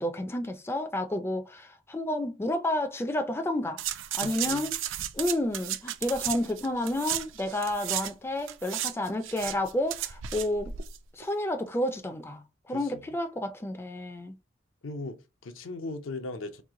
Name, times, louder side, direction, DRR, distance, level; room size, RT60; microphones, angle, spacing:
voice 1, 0.0-3.8 4.1-4.7 5.1-10.7 11.1-14.3, left 1 dB, 10° left, 0.4 m, -30 dB
sound 1, 3.8-8.1 8.4-11.0 11.2-11.3, right 11 dB, 65° right, 0.4 m, -34 dB
voice 2, 4.2-4.7 12.7-13.0 14.8-16.6, left 2 dB, 75° left, 0.6 m, -38 dB
3.1 x 2.8 x 3.6 m
head